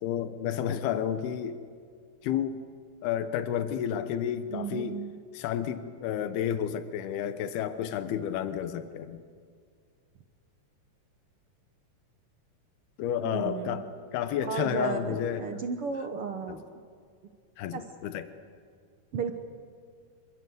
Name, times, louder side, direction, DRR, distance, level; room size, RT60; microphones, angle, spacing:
voice 1, 0.0-1.6 2.2-2.6 3.0-5.0 5.3-9.2 13.0-13.9 14.1-15.5 16.5-16.6 17.6-18.3, left 9 dB, 85° left, 10 dB, 3.1 m, -31 dB
voice 2, 4.5-5.1 13.2-13.8 14.4-16.6 17.7-17.9 19.1-19.3, right 6 dB, 75° right, 6 dB, 1.3 m, -34 dB
27.0 x 24.0 x 7.9 m, 2.1 s
omnidirectional pair, 4.4 m